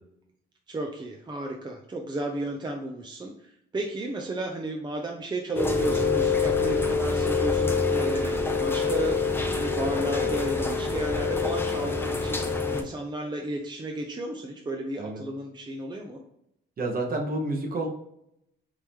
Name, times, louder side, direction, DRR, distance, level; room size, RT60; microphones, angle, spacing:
voice 1, 0.7-9.2 9.5-16.2, right 1 dB, 20° right, 2 dB, 0.6 m, -33 dB
Rain, 5.6-12.8, left 4 dB, 10° left, 0.7 m, -26 dB
voice 2, 16.8-17.9, right 2 dB, 45° right, 1 dB, 1.3 m, -29 dB
4.8 x 2.9 x 3.6 m, 0.79 s
cardioid pair, 90°, 20 cm